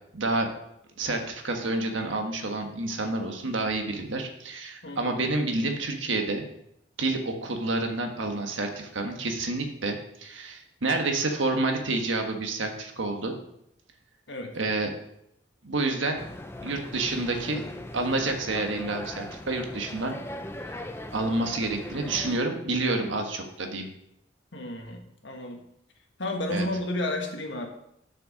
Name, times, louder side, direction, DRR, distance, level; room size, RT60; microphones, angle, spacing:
voice 1, 0.1-0.5 1.0-6.5 7.0-13.4 14.5-14.9 15.6-16.2 16.6-17.6 17.9-20.1 20.6-20.8 21.1-23.9 26.5-26.6, right 2 dB, 85° right, 4 dB, 1.5 m, -29 dB
voice 2, 4.8-5.2 14.3-14.5 24.5-25.6 26.2-27.7, left 1 dB, 70° left, 3 dB, 1.5 m, -32 dB
sound 1, 16.2-22.4, left 1 dB, 10° left, 0.5 m, -39 dB
6.6 x 6.6 x 6.4 m, 0.77 s
head